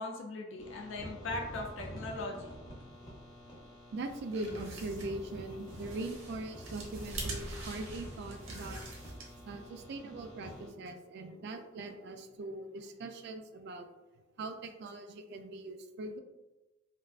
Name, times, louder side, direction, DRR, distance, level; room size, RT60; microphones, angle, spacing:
voice 1, 0.0-2.5, left 2 dB, 65° left, 1 dB, 0.5 m, -39 dB
sound 1, 0.6-10.7, equal, 20° left, 0.7 m, -48 dB
voice 2, 3.9-9.0 9.4-13.9 14.4-16.2, right 2 dB, 55° right, 7 dB, 0.3 m, -41 dB
sound 2, 4.0-9.6, right 2 dB, 85° right, 0.8 m, -44 dB
3.3 x 2.5 x 2.4 m, 1.1 s
head